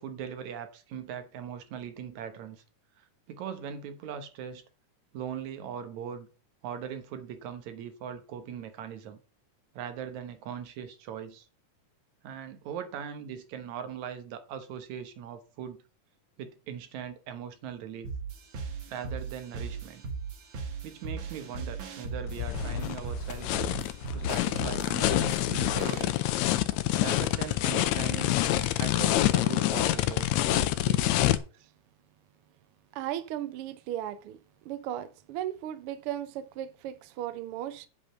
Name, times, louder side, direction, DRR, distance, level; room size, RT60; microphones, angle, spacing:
voice 1, 0.0-2.6 3.0-4.6 5.1-6.3 6.6-9.2 9.7-11.5 12.2-15.8 16.4-18.2 18.9-20.0 20.8-23.6 24.1-26.3 27.0-31.3, right 8 dB, 70° right, 2.4 m, -40 dB
sound 1, 18.0-26.0, right 5 dB, 50° right, 1.6 m, -38 dB
sound 2, 22.3-31.4, left 14 dB, 75° left, 1.8 m, -27 dB
voice 2, 32.9-34.4 34.6-37.9, right 12 dB, 90° right, 1.2 m, -36 dB
8.2 x 5.3 x 7.4 m
omnidirectional pair, 3.6 m